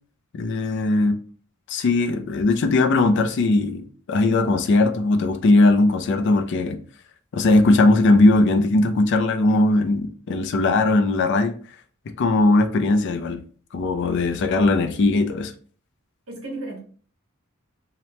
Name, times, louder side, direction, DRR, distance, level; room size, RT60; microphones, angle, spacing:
voice 1, 0.3-1.2 1.7-6.8 7.3-11.5 12.2-13.4 13.7-15.5, left 2 dB, 55° left, 8 dB, 0.4 m, -19 dB
voice 2, 16.3-16.8, right 2 dB, 85° right, -1 dB, 1.2 m, -35 dB
2.9 x 2.1 x 2.8 m, 0.43 s
head